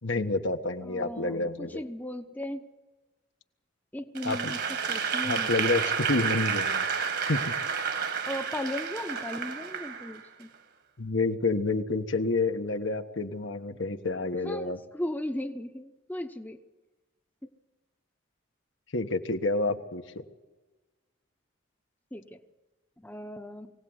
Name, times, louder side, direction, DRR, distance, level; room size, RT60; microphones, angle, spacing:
voice 1, 0.0-1.8 4.2-4.5 5.2-6.8 7.3-7.4 11.0-14.8 18.9-20.2, left 3 dB, 75° left, 6 dB, 1.4 m, -29 dB
voice 2, 0.8-2.6 3.9-4.6 4.9-5.7 8.3-10.5 14.4-16.6 22.1-22.4 23.0-23.7, left 1 dB, 10° left, 7 dB, 0.9 m, -37 dB
Applause / Crowd, 4.2-10.4, right 6 dB, 55° right, 1.8 m, -30 dB
23.5 x 17.5 x 8.0 m, 1.2 s
head